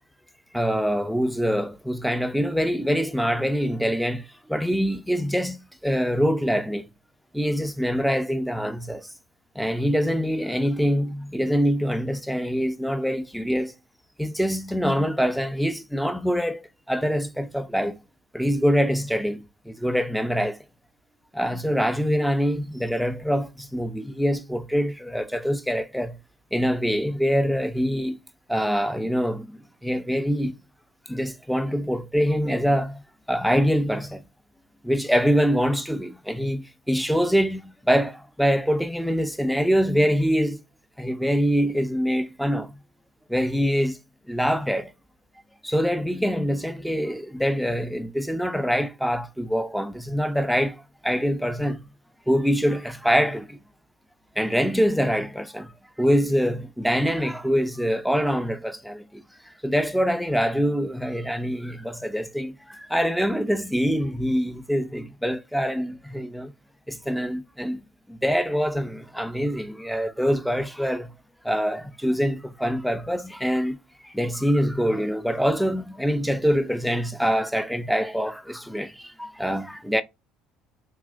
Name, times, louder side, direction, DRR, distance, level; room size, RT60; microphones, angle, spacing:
voice 1, 0.5-5.6 5.8-6.9 7.3-9.1 9.6-13.7 14.2-18.0 18.3-20.6 21.3-26.2 26.5-28.2 28.5-30.5 31.1-34.3 34.8-40.6 41.0-42.8 43.3-44.0 44.3-44.9 45.6-51.8 52.3-53.6 54.4-55.7 56.0-59.2 59.6-66.5 66.9-67.8 68.1-71.1 71.4-73.8 74.0-80.0, equal, ahead, 0.5 m, -24 dB
3.8 x 2.3 x 2.5 m
hypercardioid pair, 70°, 0 cm